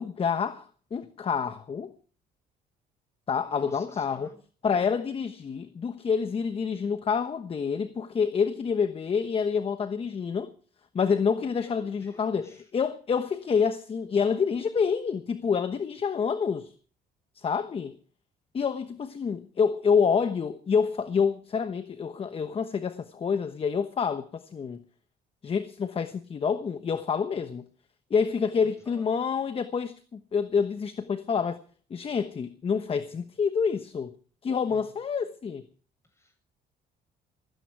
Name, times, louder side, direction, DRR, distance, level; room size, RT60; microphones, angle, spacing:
voice 1, 0.0-1.9 3.3-4.3 4.6-10.5 10.9-12.5 12.7-16.7 17.3-18.0 18.5-24.8 25.4-27.6 28.1-31.6 31.9-34.1 34.4-35.7, left 6 dB, 35° left, 1.1 m, -27 dB
voice 2, 3.4-4.4 11.4-12.7 27.3-27.5 28.6-29.1 34.6-34.9 36.0-36.5, left 2 dB, 15° left, 7.8 m, -52 dB
18.0 x 16.5 x 4.7 m
cardioid pair, 110°, 17 cm